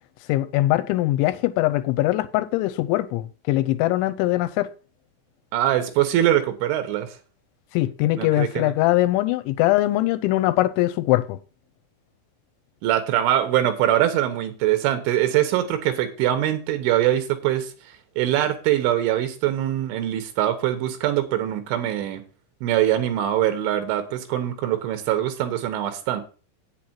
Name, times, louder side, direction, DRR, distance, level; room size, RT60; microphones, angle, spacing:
voice 1, 0.3-4.7 7.7-11.4, left 16 dB, 90° left, 3.0 m, -22 dB
voice 2, 5.5-7.1 8.2-8.7 12.8-17.7 18.2-22.2 22.6-26.2, right 12 dB, 85° right, 3.7 m, -23 dB
8.8 x 7.7 x 4.4 m
omnidirectional pair, 5.4 m